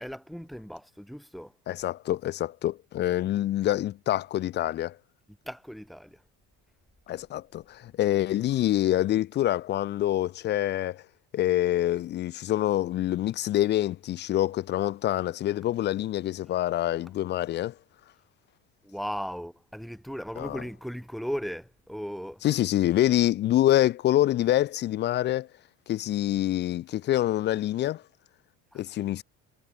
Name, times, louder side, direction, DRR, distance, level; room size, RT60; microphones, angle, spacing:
voice 1, 0.0-1.6 5.4-6.2 16.5-16.6 17.0-17.1 18.8-22.4 28.7-29.0, equal, ahead, 6.9 m, -37 dB
voice 2, 1.7-5.0 7.1-11.0 11.3-17.7 20.4-20.6 22.4-25.5 25.9-28.0 28.7-29.2, left 13 dB, 35° left, 0.6 m, -26 dB
cardioid pair, 155°, 33 cm